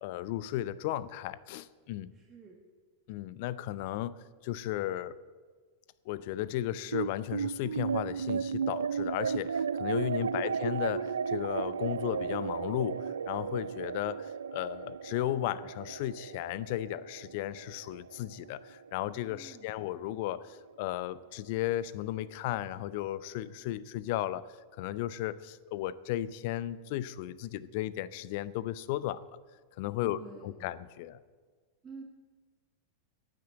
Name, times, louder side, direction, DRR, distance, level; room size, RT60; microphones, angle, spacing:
voice 1, 0.0-2.1 3.1-5.2 6.1-29.4 29.8-31.2, left 13 dB, 50° left, 18 dB, 0.5 m, -35 dB
voice 2, 2.1-2.6 10.2-10.5 19.3-19.7 30.0-30.7 31.8-32.0, right 4 dB, 20° right, -1 dB, 1.6 m, -49 dB
sound 1, 6.9-19.5, right 6 dB, 70° right, 0.3 m, -34 dB
16.0 x 8.9 x 7.8 m, 1.5 s
figure-of-eight pair, 90°, 0 cm